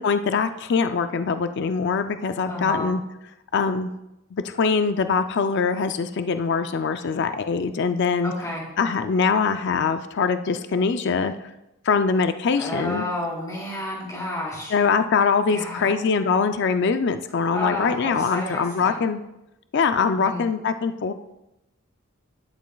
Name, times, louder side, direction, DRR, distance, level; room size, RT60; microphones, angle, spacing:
voice 1, 0.0-3.0 3.5-3.9 4.3-8.3 8.8-11.3 11.8-13.1 14.7-19.2 19.7-21.1, left 5 dB, 50° left, 9 dB, 0.4 m, -23 dB
voice 2, 2.5-2.9 8.2-8.6 12.5-14.8 15.5-15.9 17.5-19.0 20.2-20.4, left 1 dB, 15° left, -5 dB, 3.2 m, -31 dB
12.0 x 10.5 x 2.3 m, 0.91 s
head